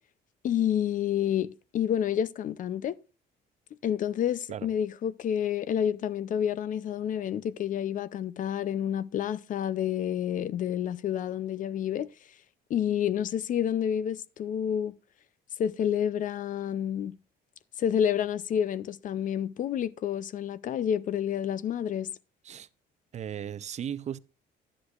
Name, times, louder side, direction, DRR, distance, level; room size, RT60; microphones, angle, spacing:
voice 1, 0.4-3.0 3.8-12.1 12.7-14.9 15.6-17.1 17.8-22.1, left 9 dB, 50° left, 0.4 m, -29 dB
voice 2, 23.1-24.2, right 9 dB, 40° right, 0.4 m, -36 dB
11.5 x 9.7 x 2.4 m
cardioid pair, 115°, 18 cm